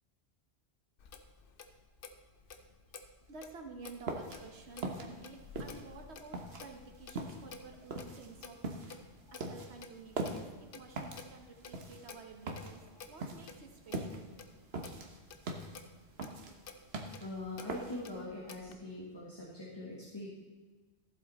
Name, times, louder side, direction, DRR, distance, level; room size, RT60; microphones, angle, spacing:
Clock, 1.0-18.8, left 5 dB, 60° left, 0.9 m, -53 dB
voice 1, 3.2-8.7 9.3-14.2, right 3 dB, 90° right, 4 dB, 1.4 m, -51 dB
sound 1, 3.9-18.2, right 2 dB, 70° right, 1.4 m, -42 dB
voice 2, 17.2-20.3, left 2 dB, 25° left, -5 dB, 1.7 m, -42 dB
14.5 x 7.5 x 4.2 m, 1.4 s
omnidirectional pair, 1.1 m